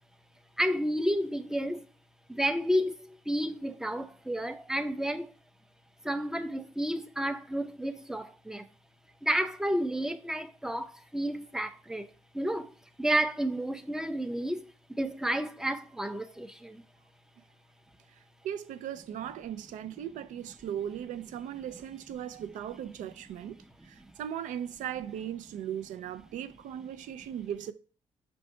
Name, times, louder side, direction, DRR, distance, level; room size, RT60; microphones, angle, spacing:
voice 1, 0.6-1.9 2.3-5.3 6.0-8.7 9.2-16.8 24.0-24.1, equal, 5° right, 0.5 m, -31 dB
voice 2, 18.4-23.6 23.9-27.7, right 10 dB, 75° right, 0.4 m, -38 dB
4.4 x 2.6 x 4.3 m
supercardioid pair, 50°, 13 cm